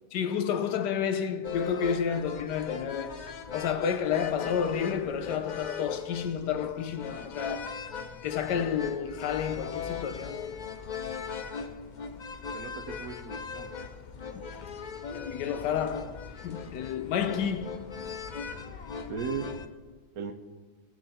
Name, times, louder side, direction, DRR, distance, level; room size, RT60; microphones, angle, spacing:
voice 1, 0.1-3.2 3.5-7.7 8.2-10.5 14.6-14.7 15.1-17.7, left 7 dB, 80° left, 1.4 m, -30 dB
sound 1, 1.4-19.7, left 6 dB, 55° left, 0.5 m, -39 dB
voice 2, 12.5-13.7 19.1-19.5 20.2-20.3, right 5 dB, 65° right, 1.3 m, -36 dB
22.0 x 7.5 x 4.2 m
omnidirectional pair, 1.8 m